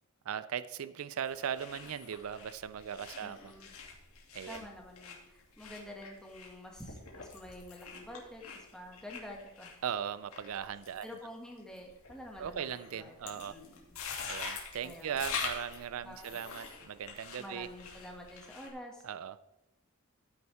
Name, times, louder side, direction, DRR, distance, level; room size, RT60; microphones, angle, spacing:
voice 1, 0.3-3.5 4.3-4.6 9.8-11.1 12.4-13.5 14.2-17.7 19.0-19.4, right 8 dB, 75° right, 15 dB, 0.4 m, -38 dB
sound 1, 1.2-18.7, left 5 dB, 85° left, 2.5 m, -45 dB
voice 2, 3.2-3.7 4.5-9.7 11.0-14.0 14.8-15.2 16.0-16.4 17.4-19.0, left 1 dB, 5° left, 0 dB, 1.9 m, -48 dB
14.0 x 9.6 x 3.5 m, 0.96 s
head